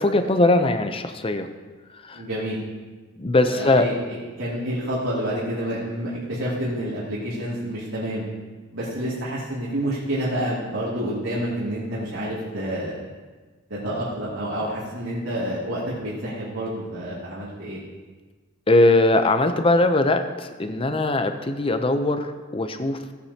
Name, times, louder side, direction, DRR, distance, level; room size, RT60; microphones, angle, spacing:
voice 1, 0.0-1.5 2.0-2.2 3.2-3.9 18.7-23.0, left 2 dB, 25° left, 8 dB, 0.6 m, -20 dB
voice 2, 2.1-2.6 3.5-8.2 8.7-13.0 13.7-17.8, equal, 75° right, -9 dB, 2.5 m, -28 dB
16.5 x 8.7 x 2.8 m, 1.3 s
head